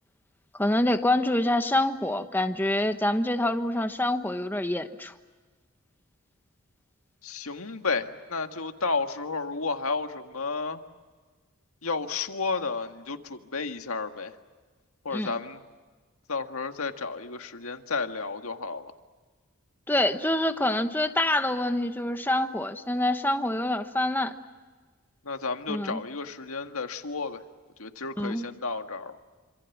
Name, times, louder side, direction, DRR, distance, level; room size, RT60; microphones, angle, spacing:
voice 1, 0.6-5.1 15.1-15.3 19.9-24.3 25.7-26.0 28.2-28.5, left 1 dB, 10° left, 8 dB, 1.1 m, -26 dB
voice 2, 7.2-10.8 11.8-14.3 15.1-15.6 16.3-18.9 25.3-27.4 27.8-29.1, left 4 dB, 80° left, 6 dB, 1.8 m, -32 dB
27.5 x 26.5 x 7.3 m, 1.4 s
head